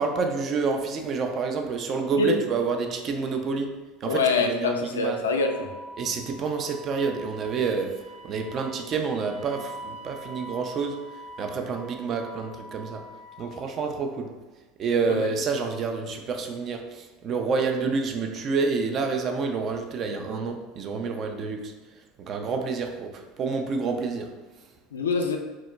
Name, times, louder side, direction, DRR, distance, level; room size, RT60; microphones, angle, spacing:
voice 1, 0.0-5.3 6.0-8.0 8.2-11.0 11.4-13.0 13.4-14.3 14.8-21.7 22.2-24.3, right 4 dB, 40° right, 4 dB, 0.3 m, -28 dB
voice 2, 4.0-5.7 15.1-15.2 24.9-25.4, left 4 dB, 75° left, 4 dB, 0.3 m, -25 dB
Wind instrument woodwind instrument, 5.3-13.6, right 1 dB, 25° right, 0.8 m, -44 dB
3.5 x 2.1 x 2.2 m, 1.2 s
figure-of-eight pair, 75°, 0 cm